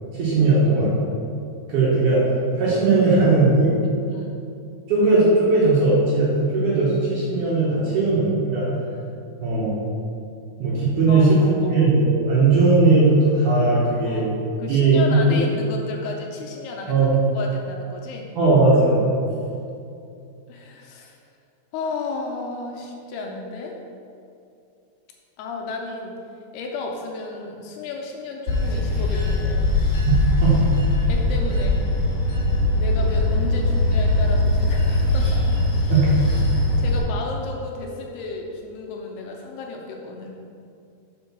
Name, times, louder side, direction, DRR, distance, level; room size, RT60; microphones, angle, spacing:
voice 1, 0.1-0.9 1.7-2.3 2.5-3.8 4.9-8.7 9.4-9.8 10.6-14.3 14.7-15.4 16.9-17.1 18.4-19.0 30.1-30.2 30.4-30.7 35.9-36.1, right 3 dB, 65° right, -7 dB, 2.2 m, -18 dB
voice 2, 11.1-11.8 14.1-14.3 14.6-17.1 17.3-18.3 20.5-21.2 21.7-23.8 25.4-26.1 26.5-29.7 31.1-31.8 32.7-35.5 36.8-40.4, left 3 dB, 80° left, 1 dB, 2.5 m, -33 dB
Bell / Train, 28.5-37.0, left 2 dB, 60° left, 2.4 m, -21 dB
5.5 x 5.2 x 5.9 m, 2.6 s
omnidirectional pair, 4.8 m